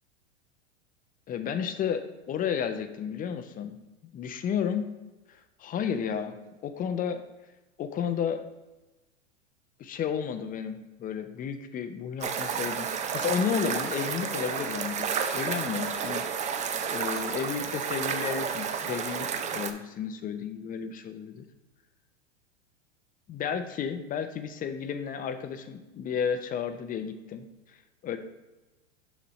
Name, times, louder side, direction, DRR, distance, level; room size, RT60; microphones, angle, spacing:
voice 1, 1.3-3.8 4.1-4.9 5.3-6.3 6.6-7.2 7.8-8.4 9.8-16.4 16.9-21.4 23.3-27.5 28.0-28.2, left 7 dB, 25° left, 9 dB, 0.6 m, -32 dB
sound 1, 12.2-19.7, right 7 dB, 20° right, 0.5 m, -31 dB
7.1 x 6.0 x 3.1 m, 1.1 s
hypercardioid pair, 110°, 35 cm